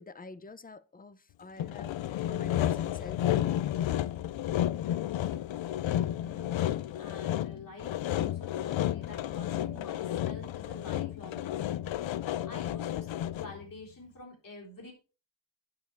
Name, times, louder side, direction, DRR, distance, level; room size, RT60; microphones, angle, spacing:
voice 1, 0.0-2.0 2.3-3.6, left 3 dB, 20° left, 0.6 m, -47 dB
Sawing, 1.6-13.6, left 12 dB, 85° left, 0.5 m, -32 dB
voice 2, 6.2-11.9 12.4-14.9, left 2 dB, 45° left, 3.8 m, -48 dB
9.5 x 7.3 x 4.5 m
wide cardioid pair, 145°, 45 cm